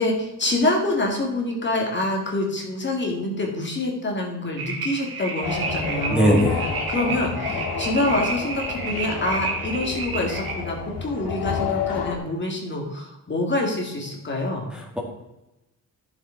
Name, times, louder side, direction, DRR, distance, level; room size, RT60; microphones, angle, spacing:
voice 1, 0.0-6.4 6.9-14.7, left 2 dB, 30° left, 0 dB, 2.1 m, -26 dB
sound 1, 4.6-10.5, right 3 dB, 70° right, 2.9 m, -31 dB
sound 2, 5.4-12.2, left 5 dB, 75° left, 2.6 m, -30 dB
voice 2, 6.1-6.7 14.7-15.0, equal, ahead, -3 dB, 2.1 m, -20 dB
13.0 x 7.1 x 4.5 m, 0.97 s
wide cardioid pair, 165°, 37 cm